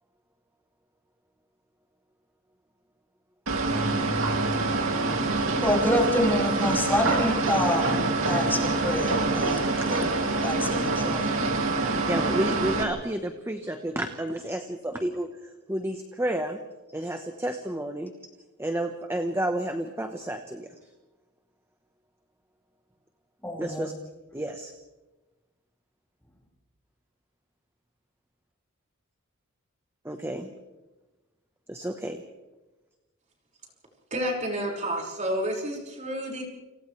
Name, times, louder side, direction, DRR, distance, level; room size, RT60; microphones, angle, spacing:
sound 1, 3.5-12.8, right 3 dB, 65° right, 2.7 m, -26 dB
voice 1, 3.7-9.6 9.9-10.0 10.4-11.4 23.4-23.9, left 1 dB, 10° left, -2 dB, 4.9 m, -28 dB
voice 2, 12.0-16.6 16.9-18.1 18.6-20.7 23.6-23.9 24.3-24.7 30.0-30.5 31.7-32.2, right 1 dB, 10° right, 5 dB, 1.1 m, -31 dB
voice 3, 34.1-36.4, equal, 35° right, -1 dB, 5.6 m, -30 dB
30.0 x 28.5 x 3.3 m, 1.1 s
head